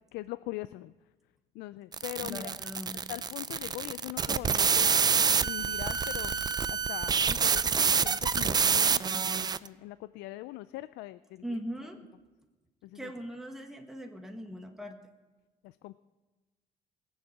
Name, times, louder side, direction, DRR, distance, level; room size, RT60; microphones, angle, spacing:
voice 1, 0.1-0.9 1.5-2.5 3.1-6.3 6.7-11.6 12.8-13.1 15.6-16.0, left 18 dB, 90° left, 15 dB, 0.4 m, -42 dB
sound 1, 1.9-9.7, right 6 dB, 25° right, 0.4 m, -27 dB
voice 2, 2.2-3.0 11.4-12.0 12.9-15.0, equal, ahead, 3 dB, 1.5 m, -40 dB
Explosion, 5.6-9.6, right 6 dB, 80° right, 2.1 m, -51 dB
21.0 x 7.1 x 7.8 m, 1.2 s
cardioid pair, 110°, 17 cm